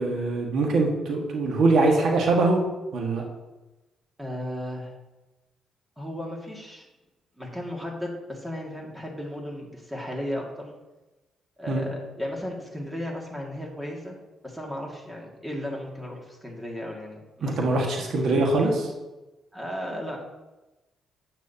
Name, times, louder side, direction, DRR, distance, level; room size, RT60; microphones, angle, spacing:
voice 1, 0.0-2.6 2.9-3.2 11.7-11.8 17.4-18.9, right 3 dB, 70° right, 0 dB, 1.7 m, -23 dB
voice 2, 4.2-4.9 6.0-6.9 7.4-10.7 11.6-14.2 14.4-17.9 19.5-20.3, left 1 dB, 10° right, -2 dB, 2.2 m, -35 dB
9.3 x 9.0 x 2.9 m, 1.1 s
cardioid pair, 90°, 0 cm